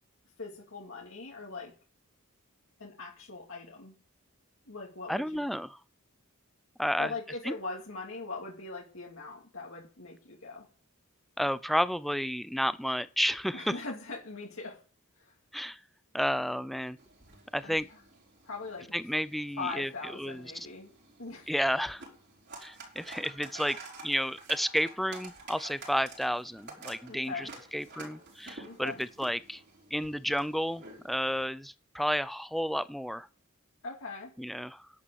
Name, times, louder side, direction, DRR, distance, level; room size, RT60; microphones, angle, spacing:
voice 1, 0.4-1.7 2.8-4.0 4.7-5.2 7.0-10.7 13.5-14.8 15.2-15.3 17.6-17.8 18.4-18.9 19.6-20.9 21.2-21.5 27.1-27.5 28.6-29.0 33.8-34.3, left 3 dB, 65° left, -1 dB, 2.8 m, -41 dB
voice 2, 5.1-5.8 6.8-7.1 7.4-7.5 11.4-13.8 15.5-15.8 16.1-17.0 17.5-17.9 18.9-20.7 21.5-22.0 22.6-23.8 24.0-29.6 29.9-33.3 34.4-34.9, equal, ahead, 15 dB, 0.5 m, -31 dB
sound 1, 17.0-31.4, right 3 dB, 50° right, 4.9 m, -50 dB
11.5 x 8.5 x 7.0 m, 0.39 s
head